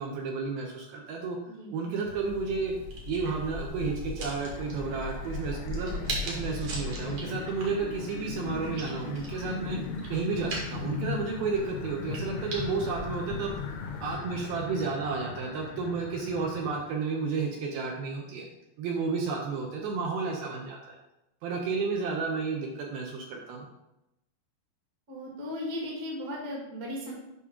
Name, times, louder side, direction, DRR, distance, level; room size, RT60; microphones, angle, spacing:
voice 1, 0.0-1.4 1.7-2.7 3.1-9.8 10.1-13.5 14.0-18.5 18.8-21.0 21.4-23.7, right 4 dB, 75° right, 0 dB, 2.4 m, -32 dB
sound 1, 2.0-14.1, left 1 dB, 55° right, 2.5 m, -39 dB
sound 2, 4.4-16.8, left 5 dB, 75° left, 2.4 m, -39 dB
voice 2, 25.1-27.1, left 1 dB, 35° right, -3 dB, 1.4 m, -36 dB
8.5 x 5.5 x 3.6 m, 0.90 s
omnidirectional pair, 4.8 m